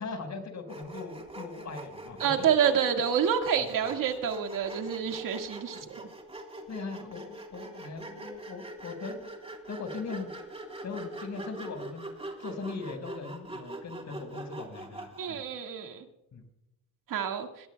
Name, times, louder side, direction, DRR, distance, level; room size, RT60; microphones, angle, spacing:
voice 1, 0.0-2.5 3.6-3.7 5.7-5.8 6.7-9.3 9.7-10.3 10.8-12.0 12.4-15.4 16.3-16.4, left 4 dB, 50° left, 5 dB, 5.1 m, -39 dB
Sawing, 0.7-15.4, right 1 dB, 15° right, 3.5 m, -43 dB
voice 2, 2.2-5.8 15.2-16.0 17.1-17.5, right 8 dB, 60° right, 4 dB, 1.9 m, -28 dB
21.0 x 17.5 x 2.3 m, 0.87 s
cardioid pair, 95°, 37 cm